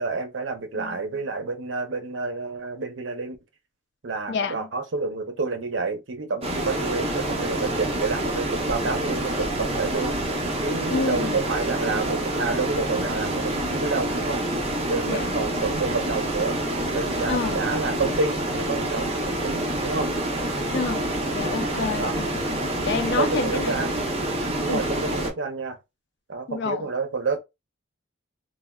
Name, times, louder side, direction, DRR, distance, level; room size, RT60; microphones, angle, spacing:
voice 1, 0.0-3.4 4.0-10.2 10.6-14.4 14.9-16.6 16.9-20.1 22.0-22.1 23.1-23.9 24.6-25.8 26.3-27.4, right 4 dB, 70° right, 0.6 m, -29 dB
voice 2, 4.3-4.7 10.9-11.4 15.1-15.3 17.3-17.6 20.7-21.0 21.3-23.8 24.7-24.8 26.5-26.9, left 4 dB, 60° left, 0.4 m, -28 dB
sound 1, 6.4-25.3, right 1 dB, 30° right, 0.6 m, -27 dB
3.3 x 2.1 x 2.2 m
head